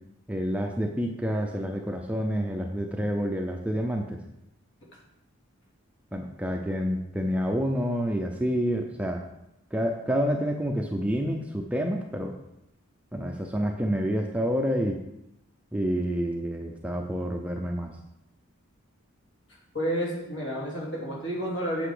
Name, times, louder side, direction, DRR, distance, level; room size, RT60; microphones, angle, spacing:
voice 1, 0.3-4.2 6.1-9.2 9.7-12.4 13.1-15.0 15.7-17.9, equal, 5° right, 2 dB, 0.6 m, -28 dB
voice 2, 19.7-21.9, equal, 60° left, -3 dB, 2.9 m, -30 dB
8.0 x 6.9 x 5.0 m, 0.85 s
head